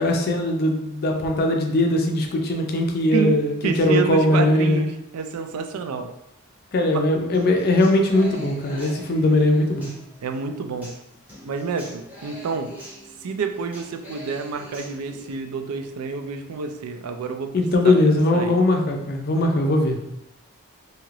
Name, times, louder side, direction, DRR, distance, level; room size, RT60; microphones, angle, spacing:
voice 1, 0.0-4.8 6.7-9.9 17.5-20.0, left 1 dB, 45° left, 3 dB, 0.4 m, -20 dB
voice 2, 3.6-6.1 6.9-7.0 10.2-10.9 11.4-12.7 13.2-17.6 17.8-17.9 18.3-18.5, right 5 dB, 90° right, 6 dB, 0.4 m, -28 dB
Human voice / Acoustic guitar, 7.3-15.3, equal, 5° right, 0.8 m, -43 dB
2.8 x 2.4 x 3.1 m, 0.84 s
head